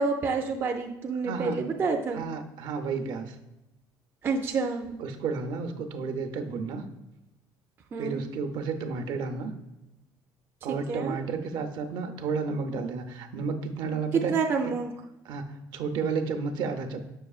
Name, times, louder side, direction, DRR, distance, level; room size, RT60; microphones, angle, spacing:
voice 1, 0.0-2.2 4.2-5.0 7.9-8.2 10.7-11.2 14.3-14.9, right 4 dB, 30° right, 2 dB, 0.5 m, -28 dB
voice 2, 1.2-1.6 2.1-3.3 5.0-6.9 8.0-9.5 10.6-14.4 14.6-14.7 15.2-17.0, right 5 dB, 60° right, 6 dB, 0.7 m, -32 dB
6.8 x 6.5 x 2.4 m, 0.96 s
cardioid pair, 165°, 8 cm